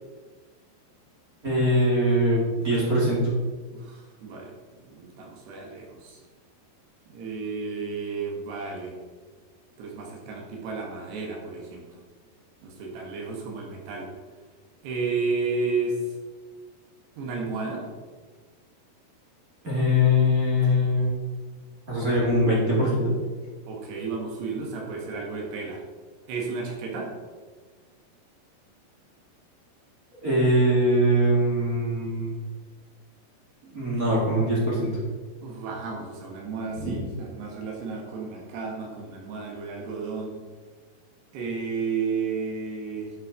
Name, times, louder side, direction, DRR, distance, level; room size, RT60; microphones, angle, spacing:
voice 1, 1.4-3.2 19.6-21.1 21.9-23.0 30.2-32.3 33.7-34.9 36.8-36.9, equal, 30° right, -6 dB, 1.7 m, -22 dB
voice 2, 3.9-4.5 4.9-6.2 7.1-8.9 9.8-11.8 12.6-14.1 14.8-16.0 17.2-17.8 23.7-25.8 26.3-27.1 35.4-40.3 41.3-43.1, right 4 dB, 75° right, 0 dB, 3.3 m, -32 dB
10.0 x 5.6 x 5.0 m, 1.4 s
omnidirectional pair, 5.0 m